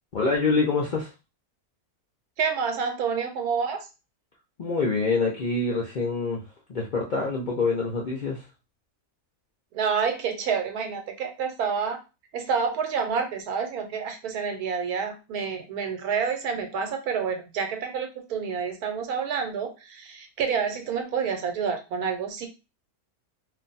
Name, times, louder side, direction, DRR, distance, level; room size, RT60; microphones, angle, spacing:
voice 1, 0.1-1.1 4.6-6.4 6.7-8.5, left 3 dB, 65° left, -3 dB, 0.4 m, -25 dB
voice 2, 2.4-3.8 9.7-12.0 12.3-22.5, right 6 dB, 85° right, 6 dB, 1.2 m, -28 dB
2.6 x 2.2 x 3.9 m, 0.29 s
omnidirectional pair, 1.6 m